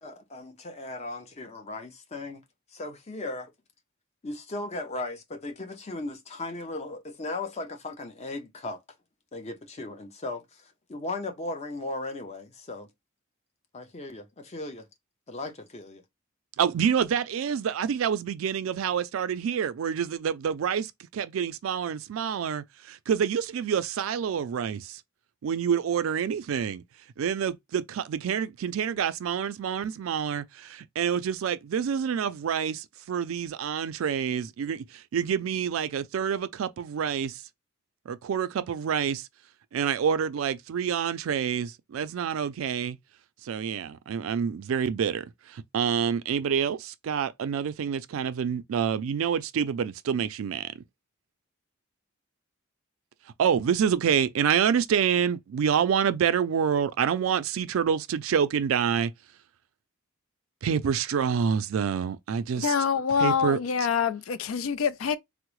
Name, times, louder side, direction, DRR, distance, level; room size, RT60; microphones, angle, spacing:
voice 1, 0.0-2.4 2.7-3.5 4.2-8.8 9.3-12.9 13.7-14.9 15.3-16.0, left 2 dB, 30° left, 0.6 m, -37 dB
voice 2, 16.6-25.0 25.4-26.8 27.2-37.4 38.1-39.3 39.7-43.0 43.4-50.7 53.4-59.1 60.6-62.8 63.1-63.9, right 7 dB, 85° right, 0.3 m, -27 dB
voice 3, 62.6-65.2, left 6 dB, 80° left, 0.4 m, -25 dB
3.6 x 2.0 x 3.0 m
head